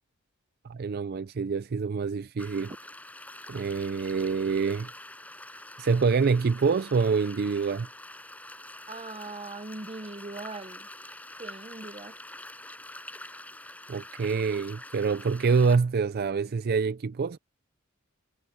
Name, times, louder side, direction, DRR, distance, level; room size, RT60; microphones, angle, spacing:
voice 1, 0.6-2.7 3.5-4.9 5.8-7.9 13.9-17.4, right 5 dB, 45° right, 0.4 m, -26 dB
sound 1, 2.4-15.8, left 1 dB, 5° left, 6.4 m, -45 dB
voice 2, 8.9-10.9 11.4-12.1, right 3 dB, 25° right, 0.8 m, -40 dB
head